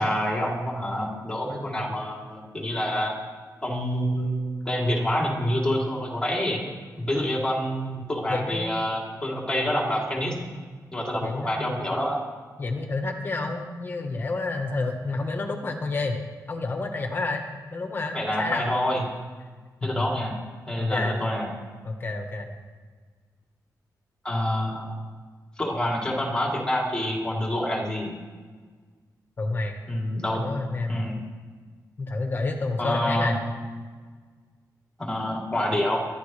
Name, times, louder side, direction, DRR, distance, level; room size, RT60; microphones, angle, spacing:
voice 1, 0.0-3.1 3.6-6.6 7.0-10.3 10.9-12.2 18.1-19.0 19.8-20.4 20.7-21.5 24.2-24.9 25.6-28.1 29.9-30.4 30.9-31.2 32.8-33.4 35.0-36.0, equal, 10° left, -3 dB, 3.2 m, -27 dB
voice 2, 8.3-8.8 11.2-11.8 12.6-16.2 16.5-17.4 17.7-18.7 19.8-20.0 20.8-21.1 21.8-22.5 29.4-29.7 30.3-31.0 32.0-33.4, left 3 dB, 30° left, 4 dB, 1.2 m, -29 dB
23.5 x 12.0 x 3.3 m, 1.5 s
wide cardioid pair, 170°, 7 cm